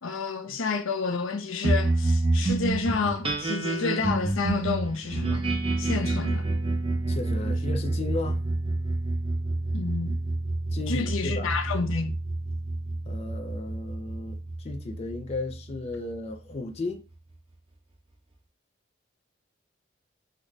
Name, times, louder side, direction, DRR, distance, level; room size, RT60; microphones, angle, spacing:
voice 1, 0.0-5.4 5.8-6.5 9.7-10.1 10.9-12.2, left 4 dB, 90° left, 0.6 m, -29 dB
sound 1, 1.6-16.3, right 2 dB, 30° right, 0.5 m, -28 dB
voice 2, 7.1-8.5 10.7-11.6 13.1-17.0, left 3 dB, 30° left, 0.3 m, -35 dB
3.9 x 2.1 x 3.1 m
head